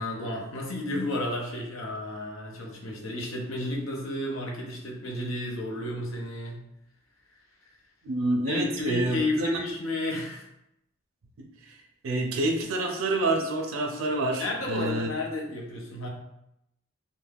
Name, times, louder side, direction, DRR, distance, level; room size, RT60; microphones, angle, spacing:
voice 1, 0.0-6.6 8.5-10.4 14.4-16.1, left 1 dB, 75° left, -1 dB, 0.6 m, -32 dB
voice 2, 8.0-9.5 11.4-11.5 12.0-15.1, right 2 dB, 80° right, 2 dB, 0.4 m, -27 dB
2.3 x 2.1 x 3.3 m, 0.82 s
head